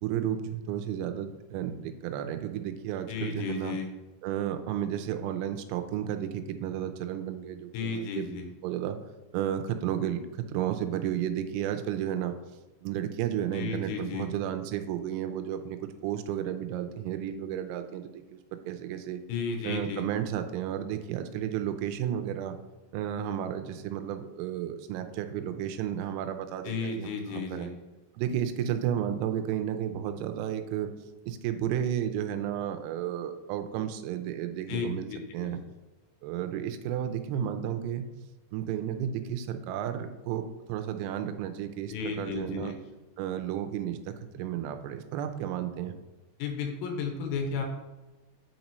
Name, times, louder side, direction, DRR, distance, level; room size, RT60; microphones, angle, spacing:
voice 1, 0.0-3.8 4.2-8.3 8.6-9.0 9.3-12.4 12.8-19.2 19.6-22.6 22.9-27.7 28.2-30.9 31.3-35.1 35.3-35.6 36.2-38.1 38.5-40.4 40.7-42.7 43.2-46.0, right 10 dB, 85° right, 7 dB, 3.3 m, -32 dB
voice 2, 3.1-3.9 7.7-8.5 13.5-14.3 19.3-20.1 26.7-27.7 34.7-35.5 41.9-42.7 46.4-47.6, left 5 dB, 90° left, 3 dB, 3.6 m, -33 dB
8.7 x 5.2 x 3.0 m, 1.2 s
omnidirectional pair, 6.0 m